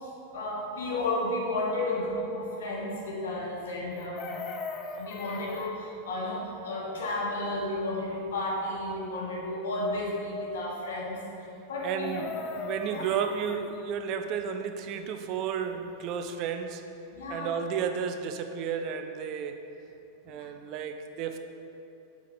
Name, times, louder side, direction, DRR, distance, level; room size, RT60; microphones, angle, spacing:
voice 1, 0.0-4.3 5.0-11.2 11.7-12.2 12.9-13.1 17.1-17.5 20.4-20.5, left 1 dB, 60° left, -4 dB, 1.4 m, -32 dB
Chicken rooster, 3.9-5.7 11.8-13.6 15.9-16.0 16.2-16.5, left 4 dB, 30° left, 0.4 m, -39 dB
voice 2, 11.8-16.8 17.3-19.6 20.3-21.4, right 7 dB, 40° right, 7 dB, 0.4 m, -32 dB
8.0 x 5.6 x 3.0 m, 2.8 s
figure-of-eight pair, 90°, 0 cm